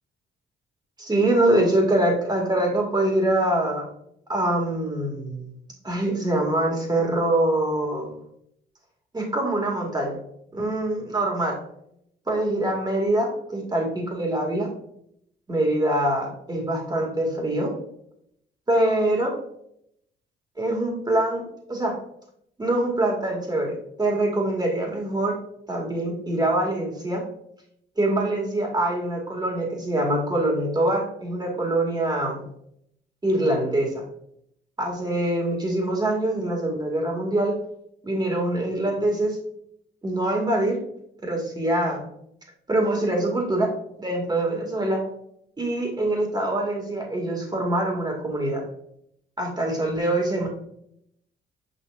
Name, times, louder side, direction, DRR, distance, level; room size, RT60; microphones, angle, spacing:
voice 1, 1.0-3.9 4.3-5.5 5.8-8.1 9.1-10.2 10.5-11.6 12.3-14.7 15.5-17.7 18.7-19.3 20.6-22.0 22.6-25.4 25.7-27.2 28.0-32.4 33.2-34.0 34.8-37.6 38.0-39.4 40.0-40.8 41.2-42.1 42.7-43.7 44.0-45.0 45.6-48.6 49.4-50.5, right 1 dB, 20° right, 0 dB, 2.3 m, -24 dB
6.5 x 5.7 x 2.6 m, 0.73 s
cardioid pair, 90°, 20 cm